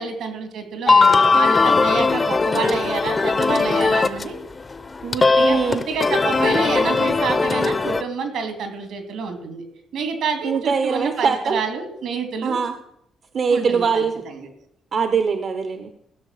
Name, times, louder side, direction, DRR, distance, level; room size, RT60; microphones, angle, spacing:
voice 1, 0.0-4.4 5.0-9.6 9.9-12.6 13.5-14.5, right 5 dB, 75° right, 5 dB, 2.6 m, -28 dB
sound 1, 0.9-4.4 4.7-8.0, left 4 dB, 30° left, 0.8 m, -19 dB
voice 2, 5.4-5.8 10.4-11.6 12.4-12.7 13.3-14.2 14.9-15.9, right 5 dB, 50° right, 8 dB, 0.9 m, -22 dB
16.0 x 6.3 x 6.7 m, 0.75 s
cardioid pair, 90°, 0 cm